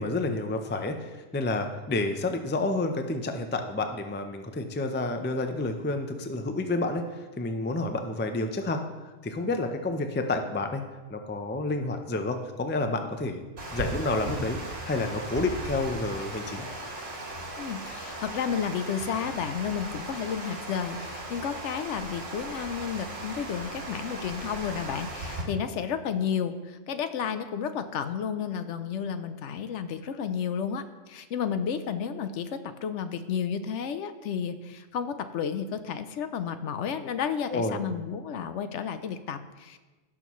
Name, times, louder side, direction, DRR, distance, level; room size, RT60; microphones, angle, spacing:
voice 1, 0.0-8.8 9.2-10.8 11.1-13.4 13.7-16.7 37.5-37.8, left 2 dB, 15° left, 6 dB, 0.4 m, -29 dB
Water, 13.6-25.4, right 1 dB, 65° right, 2.2 m, -37 dB
voice 2, 17.6-39.8, left 7 dB, 70° left, 10 dB, 0.9 m, -32 dB
16.5 x 6.3 x 3.1 m, 1.2 s
omnidirectional pair, 1.3 m